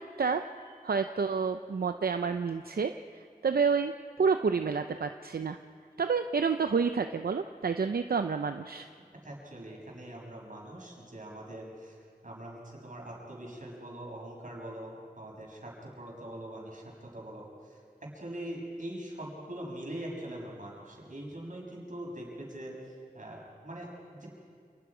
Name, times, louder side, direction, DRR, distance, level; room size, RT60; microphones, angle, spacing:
voice 1, 0.0-3.9 4.2-5.6 6.0-8.9, right 5 dB, 85° right, 7 dB, 0.6 m, -29 dB
voice 2, 9.2-12.0 12.2-22.7 23.1-24.3, right 1 dB, 60° right, -2 dB, 6.5 m, -42 dB
28.5 x 20.0 x 5.0 m, 2.2 s
wide cardioid pair, 60°, 15 cm